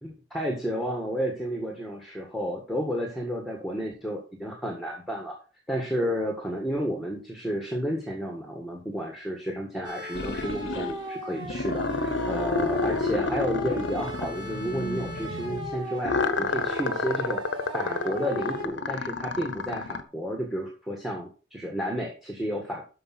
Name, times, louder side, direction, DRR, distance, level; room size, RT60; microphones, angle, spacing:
voice 1, 0.0-5.4 5.7-17.4 17.7-22.8, equal, ahead, 1 dB, 1.6 m, -31 dB
sound 1, 9.8-18.7, right 1 dB, 25° right, 1.7 m, -38 dB
sound 2, 10.2-11.1 11.4-15.7 16.0-20.0, left 3 dB, 75° left, 0.9 m, -30 dB
12.5 x 4.8 x 5.9 m, 0.36 s
head